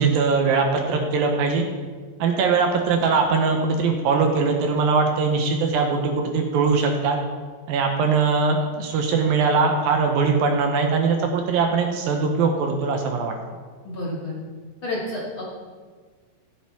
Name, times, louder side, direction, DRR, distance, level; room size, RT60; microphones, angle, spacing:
voice 1, 0.0-1.6 2.2-7.2 7.7-13.3, right 4 dB, 75° right, 3 dB, 2.5 m, -21 dB
voice 2, 13.8-14.4 14.8-15.4, left 1 dB, 40° left, -6 dB, 2.4 m, -30 dB
14.5 x 8.9 x 3.5 m, 1.5 s
omnidirectional pair, 4.5 m